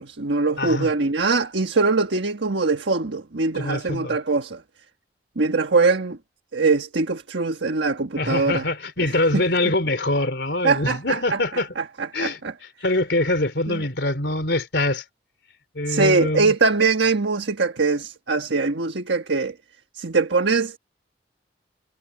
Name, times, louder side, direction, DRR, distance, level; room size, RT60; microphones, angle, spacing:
voice 1, 0.0-4.6 5.4-6.2 6.5-8.6 10.6-11.4 11.8-11.9 12.2-12.3 13.7-13.8 15.9-19.5 19.9-20.8, right 3 dB, 85° right, 1.4 m, -22 dB
voice 2, 0.6-0.9 3.5-4.2 8.1-11.7 12.1-15.0 15.7-16.5, left 2 dB, 70° left, 3.4 m, -24 dB
head